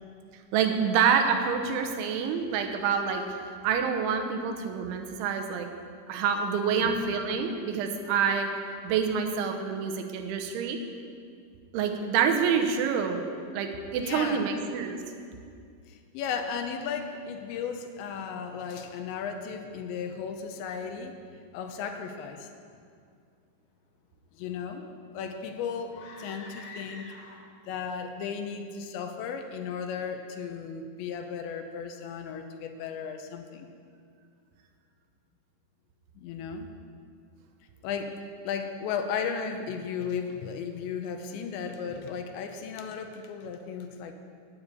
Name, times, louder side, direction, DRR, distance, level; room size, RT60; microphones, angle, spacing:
voice 1, 0.5-3.2 3.6-5.7 6.1-8.5 8.8-10.8 11.7-13.2 13.5-15.0, right 6 dB, 85° right, 5 dB, 3.3 m, -27 dB
voice 2, 14.0-14.5 15.9-21.1 21.5-22.5 24.3-24.9 25.1-27.1 27.7-33.7 36.2-36.7 37.8-38.2 38.4-44.1, left 6 dB, 85° left, 6 dB, 3.0 m, -35 dB
sound 1, 25.9-27.7, left 3 dB, 65° left, 3.5 m, -46 dB
9.9 x 9.5 x 8.3 m, 2.3 s
omnidirectional pair, 5.3 m